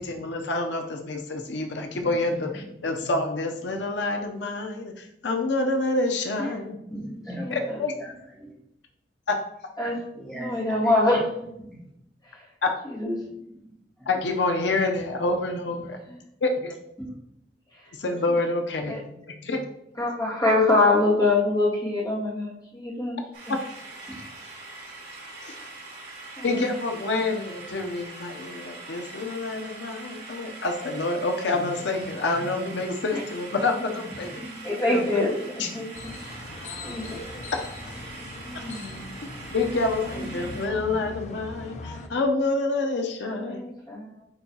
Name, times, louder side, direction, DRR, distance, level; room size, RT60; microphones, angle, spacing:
voice 1, 0.0-6.8 7.5-7.9 9.3-9.4 12.6-12.7 14.1-16.0 16.4-16.8 18.0-19.0 19.4-19.6 23.5-23.6 25.4-25.5 26.4-34.4 34.9-35.2 35.6-35.7 39.5-43.6, left 2 dB, 80° left, 4 dB, 0.7 m, -27 dB
voice 2, 2.1-3.1 6.8-8.5 9.8-10.8 11.1-11.9 14.0-14.1 14.6-14.8 15.3-16.0 17.0-17.1 18.9-19.6 20.0-20.1 24.1-24.2 27.1-27.2 27.5-28.2 31.5-32.7 33.9-34.7 35.6-35.9 37.5-37.6 40.2-40.9 43.8-44.1, equal, 5° left, -5 dB, 1.7 m, -41 dB
voice 3, 7.4-7.8 9.8-10.0 10.4-11.3 12.2-12.4 12.8-13.2 16.1-16.2 17.7-17.9 18.9-19.0 20.0-23.2 25.4-25.6 26.4-26.8 33.1-33.2 34.2-34.3 34.6-35.3 35.7-36.2 36.7-37.2 38.4-39.1 40.6-40.7 43.2-44.3, left 2 dB, 20° left, -6 dB, 2.2 m, -25 dB
sound 1, 23.3-40.7, right 3 dB, 65° right, 2.3 m, -43 dB
sound 2, 35.9-42.1, left 2 dB, 40° left, 0.6 m, -40 dB
9.0 x 3.9 x 2.8 m, 0.80 s
head